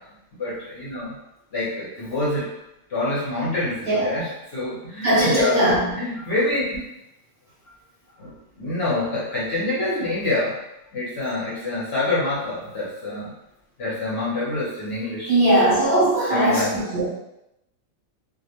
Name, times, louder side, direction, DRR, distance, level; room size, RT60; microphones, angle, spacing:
voice 1, 0.4-1.1 1.5-2.5 2.9-6.8 8.2-10.6 10.9-13.3 13.8-15.4 16.3-16.7, left 2 dB, 55° left, -7 dB, 0.8 m, -26 dB
voice 2, 3.9-4.3 5.0-5.9 15.3-17.1, right 1 dB, 50° right, -9 dB, 0.7 m, -20 dB
2.4 x 2.1 x 2.8 m, 0.88 s
omnidirectional pair, 1.5 m